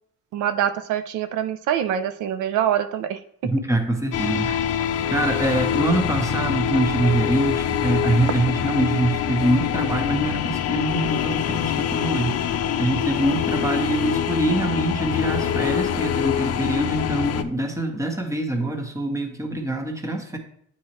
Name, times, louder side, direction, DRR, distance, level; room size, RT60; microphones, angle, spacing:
voice 1, 0.3-3.2 4.5-4.6, right 10 dB, 85° right, 10 dB, 0.5 m, -24 dB
voice 2, 3.4-4.5 5.1-20.4, right 1 dB, 10° right, 4 dB, 1.1 m, -24 dB
sound 1, 4.1-17.4, left 9 dB, 55° left, 0.5 m, -25 dB
8.5 x 4.2 x 3.0 m, 0.65 s
cardioid pair, 90°, 30 cm